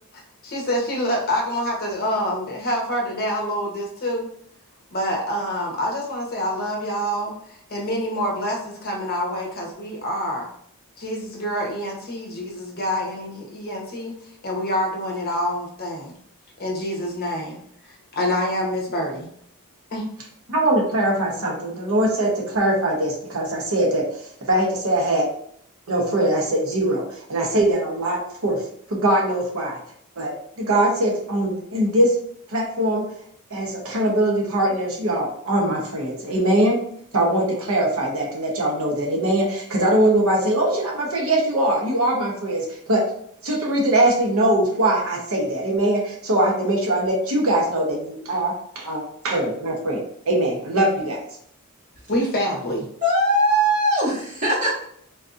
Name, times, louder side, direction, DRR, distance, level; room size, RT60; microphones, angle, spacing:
voice 1, 0.4-4.3 4.9-10.5 11.0-14.1 14.4-16.1 16.6-17.6 17.9-19.3 19.9-20.1 52.1-52.9, equal, 45° left, 0 dB, 0.8 m, -26 dB
voice 2, 20.5-24.1 24.4-25.3 25.9-28.6 28.9-29.8 30.2-32.1 32.5-33.1 33.5-36.8 37.1-43.1 43.4-51.2, right 1 dB, 65° right, -1 dB, 0.8 m, -22 dB
voice 3, 53.0-54.7, right 1 dB, 35° right, -6 dB, 1.4 m, -20 dB
3.9 x 2.6 x 2.4 m, 0.66 s
head